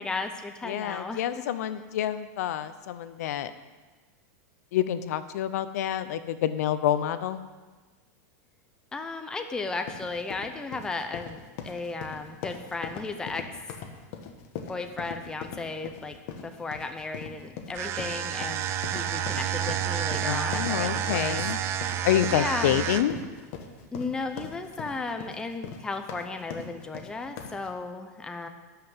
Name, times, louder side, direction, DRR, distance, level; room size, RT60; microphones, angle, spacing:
voice 1, 0.0-1.4 8.9-11.4 11.6-13.4 14.7-16.2 16.4-21.4 22.3-22.9 23.9-28.5, left 3 dB, 10° left, 6 dB, 0.6 m, -35 dB
voice 2, 0.7-3.5 4.7-7.4 20.2-21.6 22.0-23.2, left 11 dB, 70° left, 12 dB, 0.7 m, -28 dB
sound 1, 9.6-27.7, left 7 dB, 50° left, 1.4 m, -41 dB
sound 2, 17.7-23.2, right 10 dB, 30° right, 0.6 m, -30 dB
12.5 x 5.8 x 7.9 m, 1.3 s
supercardioid pair, 155°, 9 cm